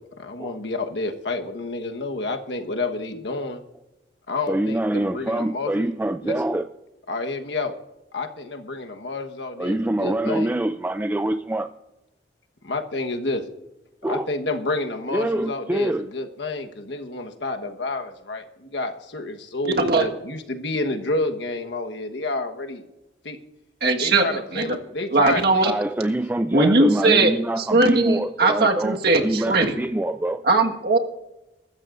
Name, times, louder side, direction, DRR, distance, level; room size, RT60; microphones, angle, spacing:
voice 1, 0.2-3.6 4.3-5.9 6.2-6.4 7.1-7.7 8.1-10.5 12.6-13.5 14.0-22.8 23.2-23.4 24.0-25.7 26.0-26.1, left 2 dB, 90° left, 5 dB, 1.3 m, -29 dB
voice 2, 4.5-6.7 9.6-11.7 14.0-14.3 15.1-16.1 25.6-30.4, right 1 dB, 10° right, 9 dB, 0.4 m, -25 dB
voice 3, 19.6-20.1 23.8-24.8 25.1-25.7 26.5-29.8 30.4-31.0, right 2 dB, 65° right, 3 dB, 1.6 m, -19 dB
23.0 x 13.0 x 2.6 m, 0.96 s
head